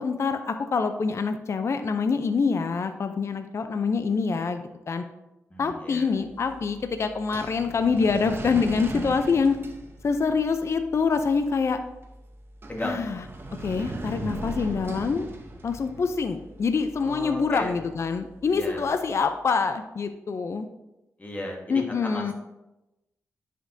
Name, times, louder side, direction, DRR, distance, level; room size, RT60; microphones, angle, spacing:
voice 1, 0.0-5.0 5.6-9.6 10.0-11.8 12.8-13.2 13.6-15.3 15.6-20.7 21.7-22.3, left 5 dB, 50° left, 8 dB, 0.5 m, -25 dB
voice 2, 5.5-6.1 12.7-13.1 17.0-17.8 18.5-18.8 21.2-22.3, left 1 dB, 25° left, 0 dB, 1.4 m, -35 dB
sound 1, 6.2-19.3, right 2 dB, 40° right, 0.8 m, -40 dB
9.8 x 5.1 x 2.7 m, 0.96 s
cardioid pair, 90°, 6 cm